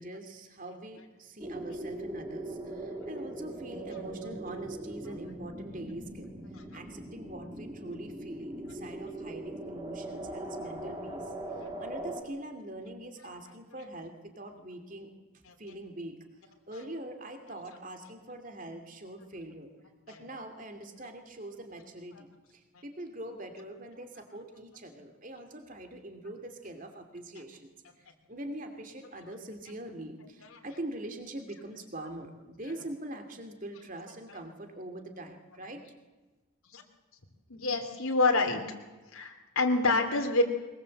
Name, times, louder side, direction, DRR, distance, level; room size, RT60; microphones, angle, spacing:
voice 1, 0.0-6.3 6.7-11.2 11.8-15.1 15.6-16.2 16.7-19.7 20.1-27.7 28.3-35.8, right 1 dB, 40° right, 6 dB, 2.6 m, -43 dB
sound 1, 1.4-12.2, right 1 dB, 20° right, 3.0 m, -40 dB
voice 2, 37.5-38.6 39.1-40.4, left 3 dB, 80° left, 3 dB, 2.8 m, -27 dB
22.5 x 20.5 x 7.8 m, 1.2 s
head